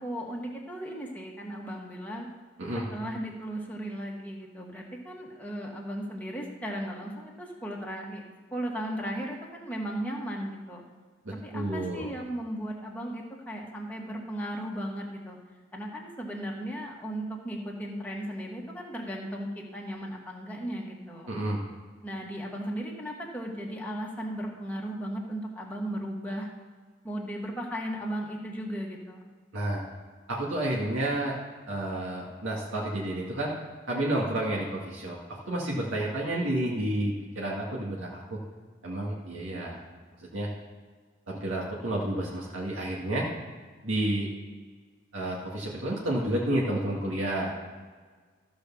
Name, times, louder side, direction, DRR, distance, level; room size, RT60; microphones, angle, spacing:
voice 1, 0.0-2.3 2.9-8.2 8.5-10.8 11.4-15.4 15.7-21.3 22.0-26.5 27.0-29.2, right 1 dB, 10° left, -2 dB, 1.7 m, -36 dB
voice 2, 11.2-12.1 21.3-21.6 29.5-29.8 30.3-31.4 31.7-33.5 33.9-38.4 38.8-39.8 40.2-40.5 41.3-43.3 43.8-44.3 45.1-47.5, right 1 dB, 85° right, -4 dB, 2.1 m, -30 dB
14.0 x 5.0 x 7.0 m, 1.5 s
head